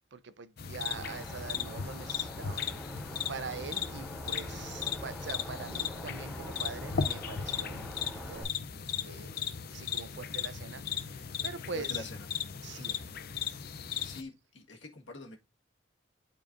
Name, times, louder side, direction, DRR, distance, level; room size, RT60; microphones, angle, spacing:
voice 1, 0.1-3.0 3.3-8.5 9.0-9.4 9.7-12.1 12.6-13.1, right 5 dB, 65° right, 0.6 m, -44 dB
sound 1, 0.6-14.2, left 7 dB, 55° left, 0.5 m, -37 dB
sound 2, 0.9-8.4, equal, 10° right, 3.7 m, -44 dB
voice 2, 11.5-12.3 14.0-15.4, left 2 dB, 75° left, 1.6 m, -45 dB
11.0 x 4.5 x 2.5 m
head